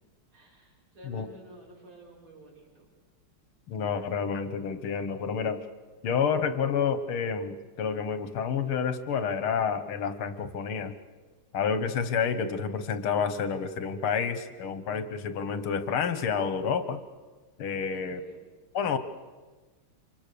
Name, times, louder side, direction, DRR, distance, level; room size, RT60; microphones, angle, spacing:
voice 1, 0.3-2.9 17.8-18.4, right 2 dB, 90° right, -3 dB, 7.5 m, -52 dB
voice 2, 3.7-5.6 6.0-10.9 11.5-17.0 17.6-18.2 18.7-19.0, left 6 dB, 80° left, 10 dB, 2.2 m, -29 dB
28.0 x 25.5 x 6.9 m, 1.3 s
omnidirectional pair, 2.3 m